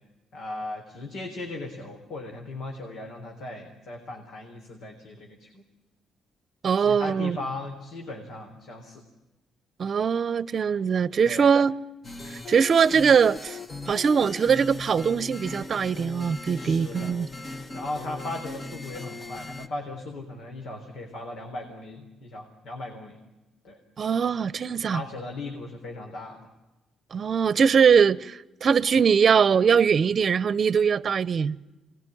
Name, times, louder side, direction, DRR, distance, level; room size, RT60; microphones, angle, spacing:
voice 1, 0.3-5.6 6.8-9.0 11.2-11.5 16.5-17.2 17.7-23.2 23.6-23.8 24.9-26.4, left 2 dB, 75° left, 3.7 m, -37 dB
voice 2, 6.6-7.4 9.8-11.7 12.3-13.6 13.9-17.3 24.0-25.0 27.1-31.6, right 6 dB, 50° right, 0.8 m, -22 dB
sound 1, 12.0-19.7, left 3 dB, 35° left, 1.6 m, -38 dB
25.0 x 20.0 x 10.0 m
cardioid pair, 90°, 0 cm